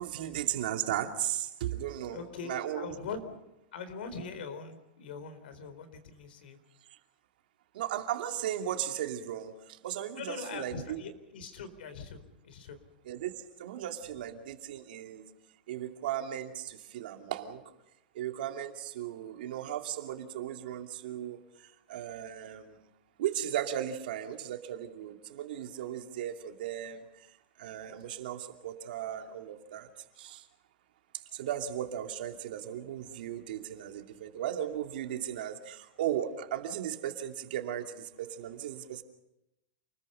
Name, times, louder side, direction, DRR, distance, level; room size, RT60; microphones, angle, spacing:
voice 1, 0.0-2.9 7.7-11.0 13.0-13.3 13.6-15.3 15.7-17.6 18.1-21.4 21.9-22.8 23.2-27.0 27.6-29.9 30.2-30.4 31.3-39.0, right 11 dB, 65° right, 4 dB, 2.6 m, -36 dB
voice 2, 2.1-3.4 3.7-6.6 10.2-12.8, left 5 dB, 70° left, 10 dB, 4.2 m, -42 dB
29.0 x 21.0 x 5.6 m, 0.88 s
supercardioid pair, 165°, 6 cm